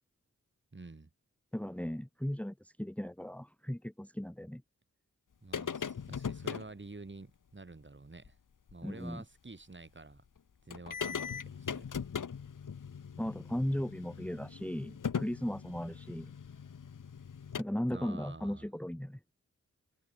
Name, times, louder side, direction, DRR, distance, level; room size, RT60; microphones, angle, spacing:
voice 1, 0.7-1.1 5.4-8.4 8.7-10.2 10.7-11.9 17.9-18.7, right 3 dB, 35° right, 5.7 m, -49 dB
voice 2, 1.5-4.6 8.8-9.2 13.2-16.3 17.6-19.2, equal, 5° left, 1.7 m, -36 dB
sound 1, 5.5-6.7 8.2-8.3 8.7-8.8 10.4-10.5 10.7-17.6, left 7 dB, 75° left, 2.0 m, -40 dB
wide cardioid pair, 70°, 32 cm